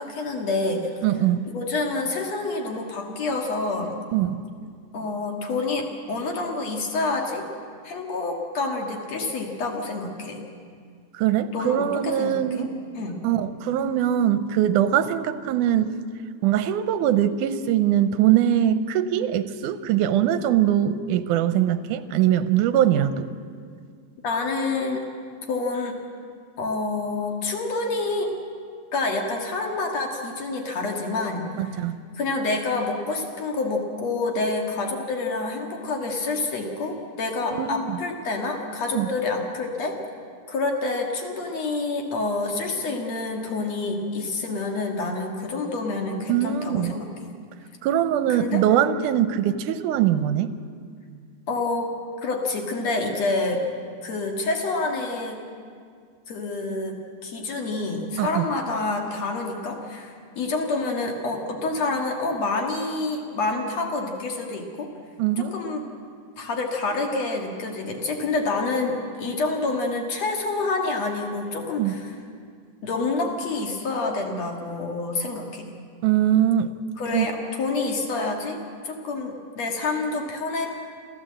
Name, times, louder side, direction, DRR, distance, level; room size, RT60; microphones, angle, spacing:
voice 1, 0.0-0.9 1.5-4.0 4.9-7.5 7.8-10.4 11.5-12.7 12.9-13.2 24.2-25.1 25.5-26.0 26.6-28.3 28.9-31.5 32.2-40.0 40.5-47.1 48.3-48.6 51.5-51.9 52.2-53.6 54.0-55.4 56.3-57.0 57.2-64.9 65.4-65.8 66.4-72.1 72.8-75.6 77.0-80.7, left 3 dB, 60° left, 2 dB, 3.0 m, -28 dB
voice 2, 1.0-1.5 4.1-4.4 11.1-12.7 13.2-15.9 16.4-23.3 31.6-31.9 37.5-38.0 38.9-39.1 46.3-47.0 47.8-50.5 58.2-58.5 65.2-65.5 71.8-72.0 76.0-76.7 77.1-77.3, right 11 dB, 85° right, 12 dB, 2.3 m, -22 dB
28.0 x 14.0 x 7.7 m, 2.1 s
omnidirectional pair, 3.5 m